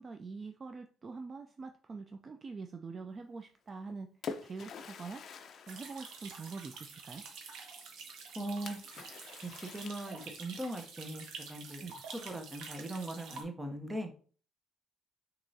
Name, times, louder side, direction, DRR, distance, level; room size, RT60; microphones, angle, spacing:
voice 1, 0.0-4.1 4.4-5.2 5.7-7.3 11.8-12.0, right 4 dB, 30° right, 6 dB, 0.3 m, -44 dB
Splash splatter, 3.7-6.9 8.7-10.6, left 5 dB, 50° left, 0.5 m, -47 dB
sound 1, 5.7-13.4, right 5 dB, 85° right, 0.9 m, -48 dB
voice 2, 8.3-8.8 9.4-11.8 12.1-14.1, right 1 dB, 10° right, 4 dB, 0.7 m, -40 dB
6.2 x 2.9 x 2.7 m, 0.42 s
cardioid pair, 150°, 0 cm